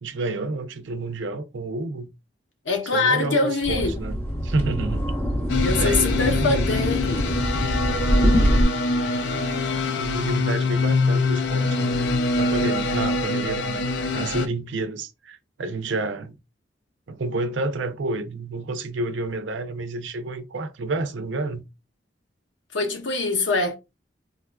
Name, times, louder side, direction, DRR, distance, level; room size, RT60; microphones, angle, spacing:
voice 1, 0.0-2.1 2.9-5.1 5.7-6.8 10.0-12.0 12.3-13.9 14.1-16.4 17.1-21.6, right 2 dB, 85° right, 0.5 m, -29 dB
voice 2, 2.6-4.0 5.6-7.4 22.7-23.7, left 3 dB, 90° left, 0.9 m, -24 dB
sound 1, 3.6-8.6, equal, 10° left, 0.5 m, -24 dB
sound 2, 5.5-14.5, left 3 dB, 65° left, 0.4 m, -24 dB
3.7 x 2.4 x 2.2 m
head